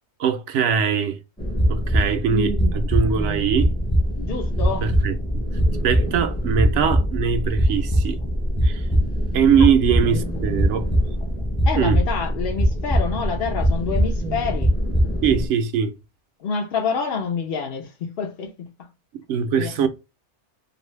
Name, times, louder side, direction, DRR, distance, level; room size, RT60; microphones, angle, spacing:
voice 1, 0.2-1.2 1.7-3.7 4.8-5.5 5.8-8.2 8.6-8.9 9.3-10.9 11.8-12.0 15.2-15.9 19.3-19.9, right 7 dB, 80° right, 0.9 m, -21 dB
sound 1, 1.4-15.5, equal, 5° left, 0.6 m, -22 dB
voice 2, 4.2-4.9 11.6-14.7 16.4-18.7 19.5-19.7, left 5 dB, 60° left, 0.7 m, -27 dB
2.7 x 2.6 x 3.1 m
omnidirectional pair, 1.2 m